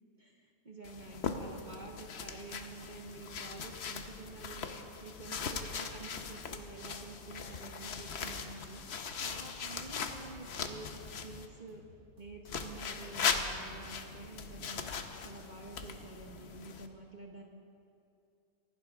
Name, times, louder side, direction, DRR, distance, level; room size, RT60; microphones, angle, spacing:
voice 1, 0.2-4.7 5.0-8.8 9.2-11.8 12.2-14.9 15.2-17.4, right 3 dB, 35° right, 1 dB, 1.0 m, -49 dB
sound 1, 0.8-11.5 12.4-16.9, left 6 dB, 50° left, 0.8 m, -39 dB
sound 2, 6.3-8.7 9.0-10.6 10.9-14.2, equal, 60° right, 2.9 m, -58 dB
24.5 x 11.5 x 3.6 m, 2.7 s
omnidirectional pair, 1.8 m